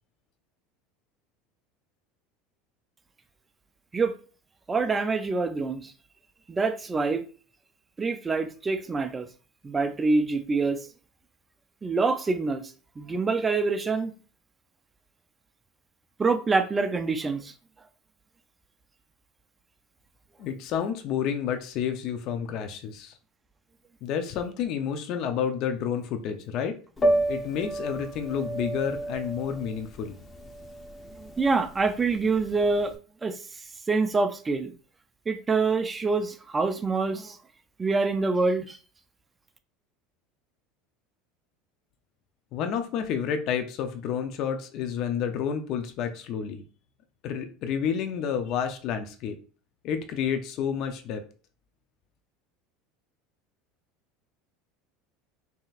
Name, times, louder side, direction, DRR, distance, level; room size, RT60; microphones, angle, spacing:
voice 1, 4.7-5.9 6.5-7.2 8.0-9.3 9.6-10.9 11.8-12.6 13.0-14.1 16.2-17.5 31.2-32.9 33.2-33.4 33.9-34.7 35.3-37.4 37.8-38.8, right 4 dB, 20° right, 0.5 m, -26 dB
voice 2, 20.4-23.1 24.0-26.8 27.3-30.2 42.5-46.6 47.2-49.4 49.8-51.2, left 8 dB, 55° left, 0.6 m, -30 dB
Piano, 27.0-32.9, right 1 dB, 20° left, 0.9 m, -30 dB
5.5 x 2.9 x 2.5 m
supercardioid pair, 120°, 0 cm